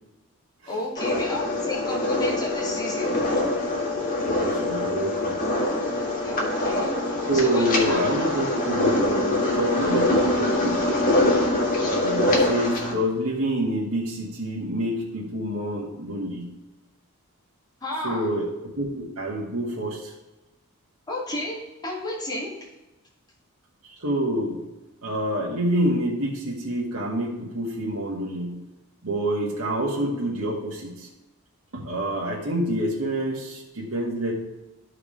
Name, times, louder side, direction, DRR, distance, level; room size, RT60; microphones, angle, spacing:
voice 1, 0.7-3.2 6.2-6.9 7.3-8.0 17.8-18.3 21.1-22.5, left 2 dB, 20° left, -7 dB, 2.5 m, -32 dB
sound 1, 1.0-12.9, left 1 dB, 40° left, 1.8 m, -24 dB
voice 2, 4.0-5.4 7.3-10.9 11.8-16.5 18.0-18.5 18.8-20.1 23.8-24.6 25.0-28.6 29.0-31.1 31.7-34.3, right 1 dB, 85° right, -4 dB, 1.7 m, -27 dB
13.5 x 4.8 x 3.3 m, 1.0 s
head